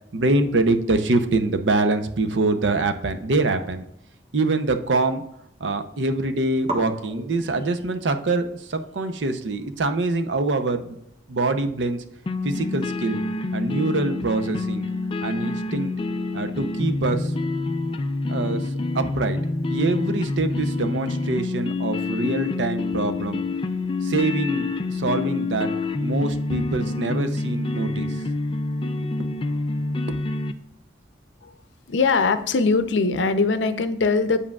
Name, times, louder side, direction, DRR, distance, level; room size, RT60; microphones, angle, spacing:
voice 1, 0.1-3.8 4.3-5.2 5.6-11.0 11.3-12.0 12.4-13.2 13.5-14.9 15.2-15.9 16.3-17.3 18.3-19.4 19.7-23.4 24.0-25.7 26.0-28.2 28.8-28.9 30.1-30.2, right 2 dB, 85° right, 8 dB, 0.6 m, -24 dB
sound 1, 3.2-4.9 5.2-5.8 6.1-6.2 6.6-13.5, right 1 dB, 35° right, 1.3 m, -41 dB
sound 2, 12.3-30.5, left 3 dB, 30° left, 0.3 m, -27 dB
voice 2, 31.9-34.4, left 4 dB, 85° left, 10 dB, 0.6 m, -21 dB
8.3 x 7.4 x 2.3 m, 0.80 s
head